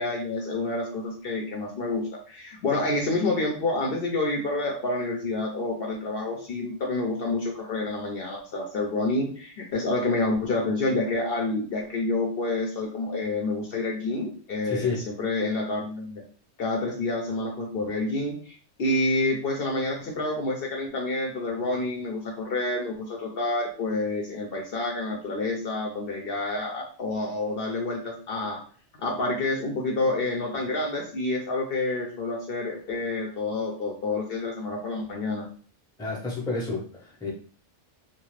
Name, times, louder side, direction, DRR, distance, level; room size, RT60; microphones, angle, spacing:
voice 1, 0.0-16.2 16.6-28.6 29.0-35.5, left 2 dB, 60° left, 0 dB, 0.7 m, -28 dB
voice 2, 14.6-15.0 36.0-37.3, left 3 dB, 5° left, -4 dB, 0.6 m, -30 dB
2.4 x 2.4 x 3.0 m, 0.41 s
omnidirectional pair, 1.2 m